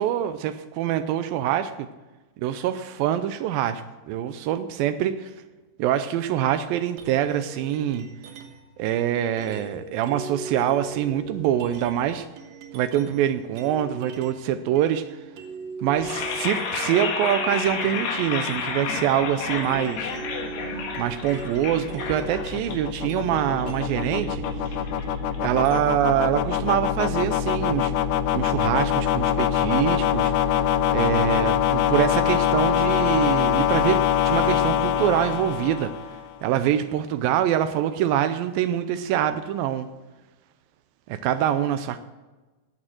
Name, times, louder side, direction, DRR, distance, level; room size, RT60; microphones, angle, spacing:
voice 1, 0.0-1.9 2.4-5.3 5.8-8.1 8.8-12.3 12.7-15.2 15.8-20.1 21.0-24.4 25.4-27.9 28.3-30.3 30.9-35.9 36.4-39.9 41.1-42.0, right 11 dB, 90° right, 10 dB, 2.0 m, -25 dB
sound 1, 7.0-8.7 9.4-14.5 14.8-26.2, right 4 dB, 65° right, 1.8 m, -39 dB
sound 2, 15.9-26.0, left 5 dB, 75° left, 3.7 m, -32 dB
sound 3, 20.2-36.3, left 10 dB, 90° left, 2.8 m, -24 dB
13.0 x 8.8 x 7.7 m, 1.2 s
omnidirectional pair, 4.7 m